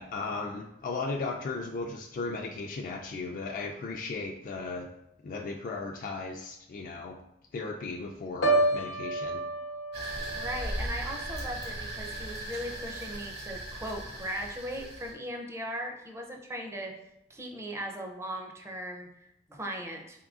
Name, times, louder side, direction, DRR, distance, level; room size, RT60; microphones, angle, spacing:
voice 1, 0.0-4.9 5.2-7.2 7.5-9.4, left 3 dB, 50° left, 1 dB, 0.3 m, -36 dB
Piano, 8.4-12.4 12.8-13.1, right 2 dB, 85° left, 0.7 m, -31 dB
sound 1, 9.9-15.1, right 1 dB, 65° right, 1.4 m, -38 dB
voice 2, 10.4-16.9 17.3-20.2, equal, 15° right, 2 dB, 0.5 m, -38 dB
3.8 x 3.7 x 2.4 m, 0.82 s
head